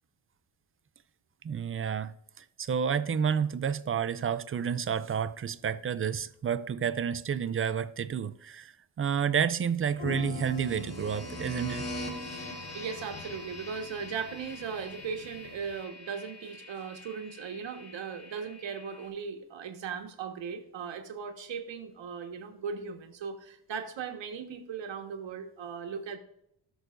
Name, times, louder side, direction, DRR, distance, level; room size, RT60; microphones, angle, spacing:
voice 1, 1.4-8.7 9.0-11.9, right 7 dB, 30° right, 0.4 m, -30 dB
sound 1, 9.9-15.8, left 6 dB, 85° left, 1.4 m, -44 dB
sound 2, 10.3-19.1, left 1 dB, 30° left, 2.1 m, -43 dB
voice 2, 12.7-26.2, right 6 dB, 70° right, 1.6 m, -38 dB
19.0 x 6.4 x 2.6 m
wide cardioid pair, 145°, 47 cm